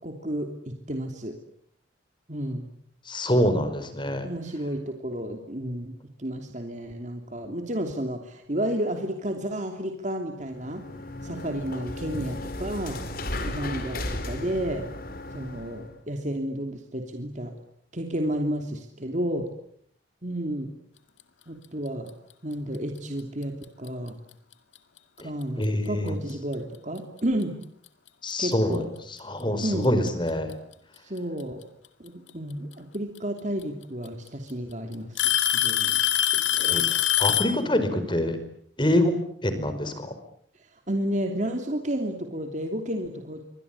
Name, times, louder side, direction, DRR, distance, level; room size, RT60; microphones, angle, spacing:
voice 1, 0.0-1.3 2.3-2.7 4.2-5.9 6.2-10.8 11.2-13.0 13.4-14.8 15.3-17.5 17.9-19.4 20.2-20.7 21.5-22.1 22.4-24.2 25.2-27.5 28.4-28.9 29.6-29.9 31.0-31.6 32.0-36.0 37.7-37.9 40.9-43.5, right 1 dB, 40° right, 4 dB, 3.0 m, -31 dB
voice 2, 3.1-4.3 25.2-25.3 25.6-26.1 28.2-28.8 29.1-30.5 36.6-38.4 38.8-39.2 39.4-40.1, left 1 dB, 25° left, 10 dB, 4.9 m, -25 dB
sound 1, 10.4-15.9, left 1 dB, 50° left, 4.3 m, -35 dB
Alarm / Tick-tock, 23.6-23.9 24.8-24.9 25.6-25.7 27.4-27.5 28.7-28.8 30.1-30.5 32.3-32.4 33.6-33.7 34.1-34.5 35.2-37.6, left 12 dB, 85° left, 2.3 m, -23 dB
28.0 x 25.0 x 8.5 m, 0.66 s
head